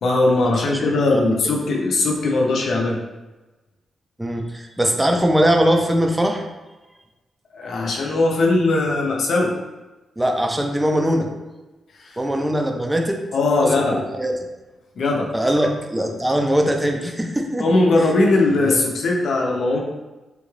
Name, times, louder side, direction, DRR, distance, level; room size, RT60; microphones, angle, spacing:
voice 1, 0.0-3.0 7.5-9.5 13.3-14.0 15.0-15.3 15.6-15.7 17.6-19.8, left 2 dB, 70° left, -1 dB, 0.6 m, -19 dB
voice 2, 4.2-6.5 10.2-11.3 12.2-13.2 13.6-14.4 15.3-17.7 18.6-18.8, equal, 10° right, 3 dB, 0.4 m, -21 dB
3.7 x 2.3 x 3.1 m, 1.1 s
cardioid pair, 95°, 0 cm